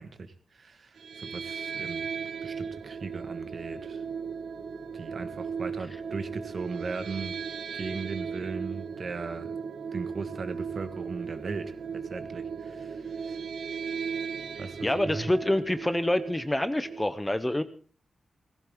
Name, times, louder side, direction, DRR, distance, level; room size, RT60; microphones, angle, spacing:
voice 1, 0.0-2.1 2.4-4.0 4.9-7.4 7.7-9.6 9.9-13.4 14.6-15.3, right 4 dB, 45° right, 1.5 m, -38 dB
sound 1, 1.0-17.1, right 6 dB, 65° right, 1.5 m, -37 dB
voice 2, 14.8-17.6, left 1 dB, 10° left, 0.7 m, -27 dB
18.0 x 16.0 x 3.6 m
wide cardioid pair, 160°, 0 cm